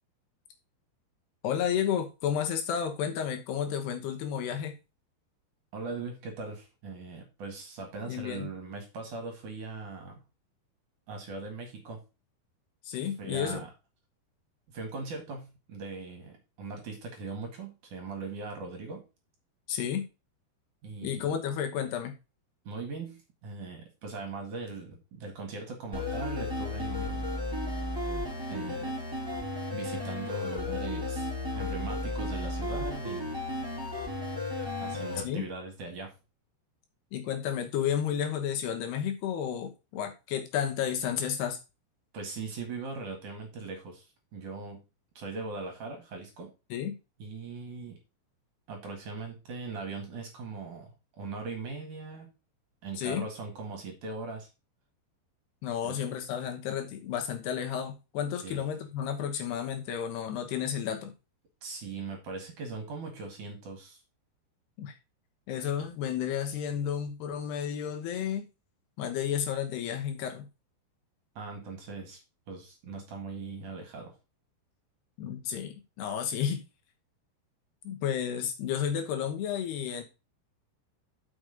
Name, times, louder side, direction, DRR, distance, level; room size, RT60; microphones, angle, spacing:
voice 1, 1.4-4.8 8.1-8.5 12.8-13.6 19.7-20.1 21.0-22.2 35.2-35.4 37.1-41.6 46.7-47.0 53.0-53.2 55.6-61.1 64.8-64.9 65.5-68.5 69.0-70.5 75.2-76.6 77.8-80.0, left 8 dB, 70° left, 4 dB, 3.0 m, -32 dB
voice 2, 5.7-10.2 11.1-12.0 13.2-13.7 14.7-19.0 20.8-21.4 22.6-27.2 28.5-28.9 29.7-33.4 34.8-36.1 42.1-44.8 45.1-46.5 47.2-48.0 48.7-52.3 52.8-54.5 55.8-56.0 58.4-58.6 61.6-64.0 71.4-72.2 72.5-74.2, right 4 dB, 55° right, 3 dB, 2.7 m, -40 dB
sound 1, 25.9-35.2, left 2 dB, 5° right, 3.5 m, -34 dB
6.3 x 6.3 x 5.0 m, 0.28 s
omnidirectional pair, 5.2 m